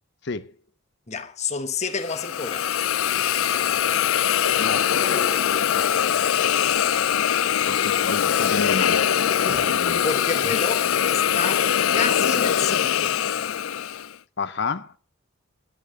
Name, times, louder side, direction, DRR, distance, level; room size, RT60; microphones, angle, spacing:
voice 1, 1.1-2.8 9.5-13.2, left 5 dB, 30° left, 1.2 m, -30 dB
Hiss, 2.0-14.1, left 9 dB, 75° left, 0.5 m, -22 dB
Speech, 4.3-10.2, equal, 5° left, 2.3 m, -40 dB
voice 2, 4.6-5.2 7.7-10.0 10.5-10.6 14.4-14.9, left 4 dB, 50° left, 0.8 m, -31 dB
10.5 x 9.0 x 6.6 m
head